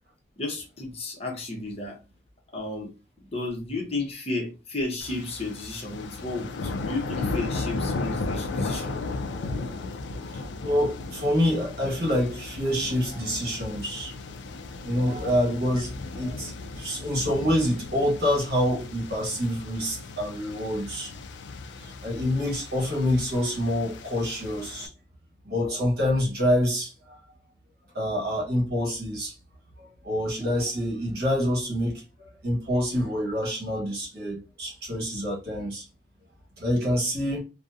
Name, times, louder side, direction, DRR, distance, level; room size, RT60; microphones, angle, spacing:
voice 1, 0.4-2.0 2.5-2.9 3.3-9.0, left 2 dB, 35° left, 0.6 m, -33 dB
sound 1, 5.0-24.9, left 3 dB, 70° left, 0.3 m, -35 dB
voice 2, 10.2-14.1 14.8-21.1 21.8-24.9 25.4-27.2 27.9-29.3 29.8-35.8 36.6-37.4, equal, 55° right, 1.2 m, -27 dB
2.6 x 2.0 x 2.4 m
head